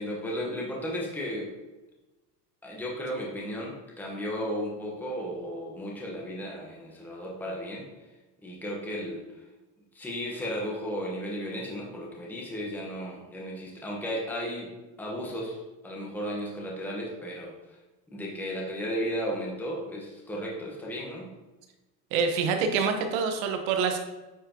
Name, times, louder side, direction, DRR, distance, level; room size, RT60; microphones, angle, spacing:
voice 1, 0.0-1.5 2.6-7.9 8.4-9.2 9.9-14.7 15.0-17.8 18.1-21.3, equal, 5° left, -3 dB, 1.1 m, -34 dB
voice 2, 22.1-24.0, right 5 dB, 65° right, 5 dB, 1.3 m, -26 dB
9.0 x 4.8 x 2.9 m, 1.1 s
supercardioid pair, 140°, 46 cm